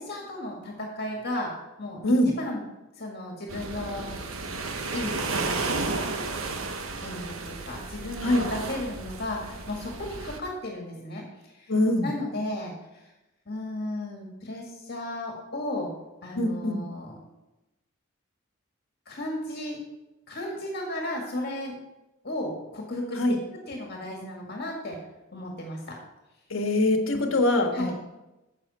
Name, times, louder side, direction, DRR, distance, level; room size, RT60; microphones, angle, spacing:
voice 1, 0.0-1.5 1.8-2.0 2.4-2.6 3.0-4.1 4.9-6.0 7.0-11.7 12.0-13.1 13.5-15.9 16.2-17.2 19.1-19.8 20.3-21.7 22.2-23.2 23.7-25.0 25.3-26.0 27.1-27.3 27.7-27.9, left 1 dB, 50° left, 0 dB, 1.9 m, -34 dB
sound 1, 3.5-10.4, right 3 dB, 80° right, 1.0 m, -33 dB
voice 2, 11.7-12.1 16.4-16.8 23.2-23.4 26.5-27.9, left 1 dB, 70° left, 4 dB, 1.4 m, -23 dB
10.5 x 7.5 x 4.2 m, 0.99 s
head